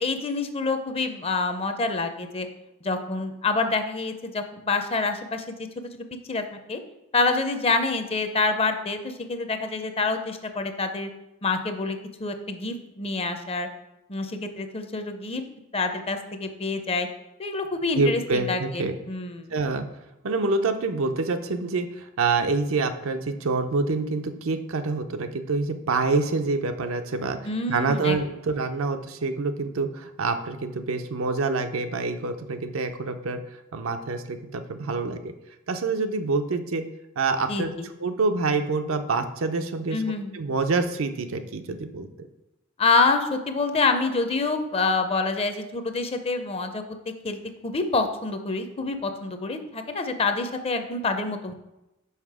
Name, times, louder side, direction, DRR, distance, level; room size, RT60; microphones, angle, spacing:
voice 1, 0.0-2.5 2.8-6.4 6.7-6.8 7.1-11.1 11.4-13.7 14.1-15.4 15.7-17.1 17.4-19.5 27.4-28.2 37.5-37.9 39.9-40.3 42.8-51.5, left 3 dB, 30° left, 7 dB, 0.6 m, -27 dB
voice 2, 18.0-18.9 19.5-19.8 20.2-27.4 27.7-33.4 33.7-35.3 35.7-36.8 37.2-37.7 38.0-40.0 40.3-42.1, right 3 dB, 75° right, 7 dB, 0.6 m, -26 dB
5.7 x 5.0 x 4.8 m, 0.93 s
head